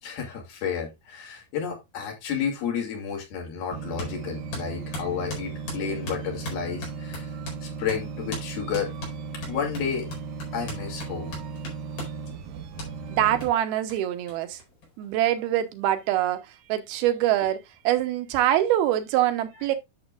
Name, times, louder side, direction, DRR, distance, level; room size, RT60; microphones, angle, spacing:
voice 1, 0.0-7.3 7.6-8.9 9.5-10.1 10.5-11.4, left 7 dB, 75° left, 4.5 m, -31 dB
sound 1, 3.7-13.5, right 5 dB, 65° right, 2.2 m, -36 dB
sound 2, 4.0-4.1 4.5-7.6 7.9-8.0 8.3-8.5 8.7-12.2 12.8-12.9 13.4-13.5 13.9-14.0 14.3-14.4 14.6-15.3, left 1 dB, 55° left, 6.0 m, -38 dB
voice 2, 13.1-14.6 15.0-19.8, right 12 dB, 85° right, 2.9 m, -24 dB
11.0 x 7.0 x 2.4 m
omnidirectional pair, 4.4 m